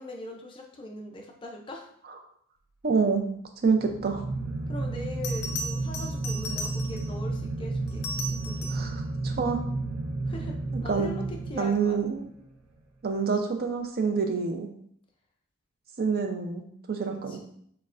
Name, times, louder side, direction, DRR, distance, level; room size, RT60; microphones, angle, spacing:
voice 1, 0.0-1.9 4.7-8.0 8.4-8.7 10.3-10.6 10.8-12.0 17.3-17.4, left 1 dB, 25° left, 1 dB, 0.4 m, -40 dB
voice 2, 2.8-3.2 3.6-4.2 8.7-9.6 10.9-11.1 11.5-12.2 13.0-14.7 16.0-17.4, right 5 dB, 45° right, 5 dB, 0.5 m, -27 dB
sound 1, 3.7-12.1, right 2 dB, 85° right, 0.7 m, -32 dB
Bell, 4.6-4.7 5.2-7.2 7.9-9.0 11.6-11.9, left 1 dB, 85° left, 0.5 m, -37 dB
6.4 x 2.2 x 2.4 m, 0.65 s
head